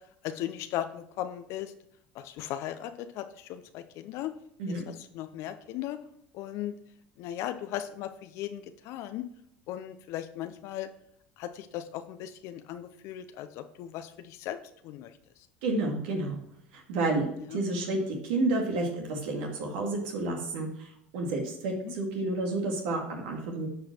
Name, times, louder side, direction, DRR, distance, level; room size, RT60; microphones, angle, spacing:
voice 1, 0.2-1.7 2.1-4.3 4.7-6.0 6.3-6.7 7.2-9.3 9.7-10.9 11.4-14.6 14.8-15.1 17.4-17.6 21.8-21.9, left 12 dB, 65° left, 9 dB, 0.6 m, -37 dB
voice 2, 15.6-16.4 16.9-20.9 21.1-23.7, right 2 dB, 75° right, 1 dB, 2.1 m, -30 dB
9.4 x 5.0 x 4.4 m, 0.72 s
hypercardioid pair, 80°, 6 cm